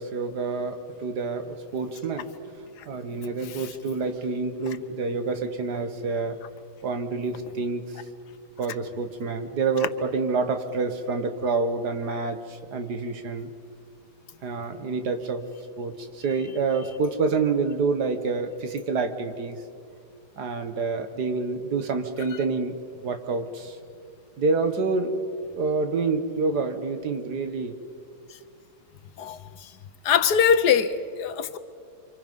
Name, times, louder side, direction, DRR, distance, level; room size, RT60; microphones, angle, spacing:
voice 1, 0.0-2.3 2.9-6.4 6.8-7.9 8.6-13.5 14.4-15.5 15.8-19.6 20.4-23.8 24.4-25.2 25.6-27.8, right 4 dB, 70° right, 1.9 m, -27 dB
voice 2, 30.0-31.6, left 7 dB, 70° left, 1.4 m, -21 dB
29.0 x 26.0 x 5.5 m
omnidirectional pair, 1.8 m